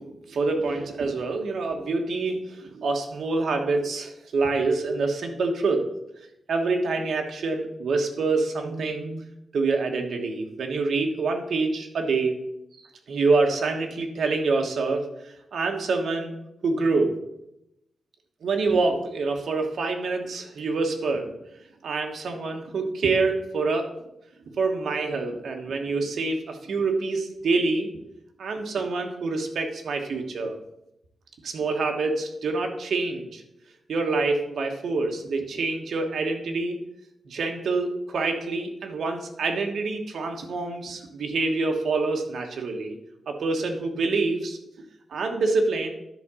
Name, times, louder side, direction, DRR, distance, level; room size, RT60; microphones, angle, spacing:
voice 1, 0.0-5.8 6.5-9.2 9.5-12.4 13.1-16.3 16.6-17.1 18.4-21.3 21.8-23.9 24.6-27.9 28.4-30.6 31.4-33.4 33.9-36.8 37.3-43.0 43.3-44.6 45.1-45.9, right 3 dB, 65° right, 3 dB, 1.2 m, -26 dB
10.5 x 3.6 x 6.2 m, 0.84 s
wide cardioid pair, 175°, 0 cm